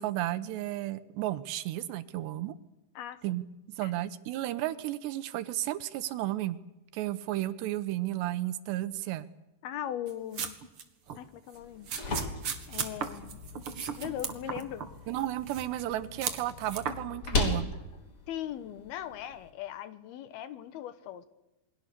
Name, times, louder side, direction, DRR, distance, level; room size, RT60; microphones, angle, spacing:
voice 1, 0.0-2.5 3.2-3.4 3.8-6.6 6.9-9.3 15.1-17.7, right 14 dB, 85° right, 3.1 m, -33 dB
voice 2, 9.6-10.6 11.2-11.9 12.7-13.4 14.0-14.9 18.3-21.3, left 11 dB, 70° left, 2.8 m, -39 dB
sound 1, 10.1-10.8 11.1-11.2 11.9-14.9 15.1-15.8 16.2-16.9, right 7 dB, 50° right, 1.7 m, -36 dB
sound 2, 11.5-19.5, left 3 dB, 35° left, 3.8 m, -37 dB
28.5 x 22.5 x 6.8 m
omnidirectional pair, 4.9 m